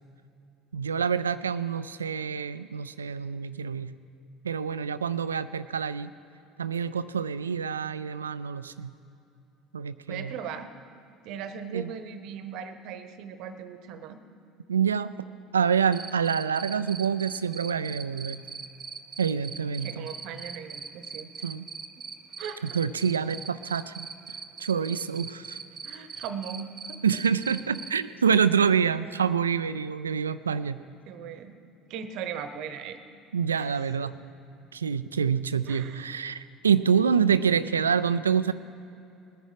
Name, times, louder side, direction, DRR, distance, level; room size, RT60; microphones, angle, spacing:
voice 1, 0.7-3.9 4.4-6.1 6.6-8.9 9.7-10.3 11.7-11.9 14.7-15.1 15.5-18.4 19.2-20.1 21.4-21.6 22.7-24.1 24.6-25.6 27.0-30.8 33.3-34.2 34.7-38.5, right 7 dB, 85° right, 15 dB, 0.3 m, -26 dB
voice 2, 10.1-10.7 11.2-14.2 19.4-19.5 19.7-21.3 22.4-22.8 25.8-27.0 31.1-31.6 31.9-33.0 33.5-33.8 35.7-36.2, right 7 dB, 60° right, 10 dB, 0.9 m, -38 dB
Cricket, 15.9-27.9, right 5 dB, 30° right, 0.8 m, -39 dB
19.5 x 10.5 x 4.9 m, 2.7 s
figure-of-eight pair, 65°, 0 cm